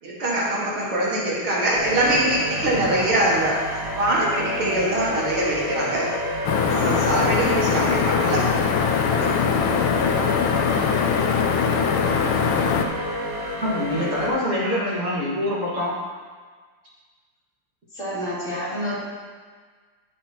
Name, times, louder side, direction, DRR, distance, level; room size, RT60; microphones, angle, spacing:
voice 1, 0.0-3.6 3.9-6.1 6.7-8.4 9.1-9.3 12.3-12.7 14.6-14.8, right 1 dB, 80° right, -5 dB, 2.8 m, -23 dB
sound 1, 1.8-14.3, equal, 55° right, 2.1 m, -30 dB
sound 2, 6.5-12.9, left 6 dB, 80° left, 1.5 m, -22 dB
voice 2, 13.6-15.9, left 1 dB, 30° right, -7 dB, 2.1 m, -25 dB
voice 3, 17.9-19.0, equal, 35° left, -9 dB, 3.1 m, -28 dB
12.0 x 7.5 x 3.0 m, 1.5 s
omnidirectional pair, 2.3 m